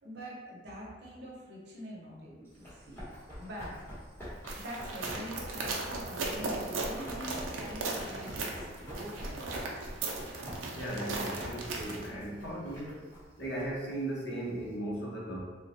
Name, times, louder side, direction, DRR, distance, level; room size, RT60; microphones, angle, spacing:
voice 1, 0.0-3.0 3.4-3.8 4.6-9.4 12.3-12.8, equal, 60° right, -4 dB, 0.8 m, -45 dB
Run, 2.5-14.7, equal, 10° left, 0.9 m, -46 dB
sound 1, 4.5-12.1, right 3 dB, 90° right, 0.5 m, -37 dB
voice 2, 10.7-13.0 13.4-15.4, right 1 dB, 60° left, -5 dB, 0.8 m, -37 dB
3.5 x 2.2 x 2.8 m, 1.4 s
head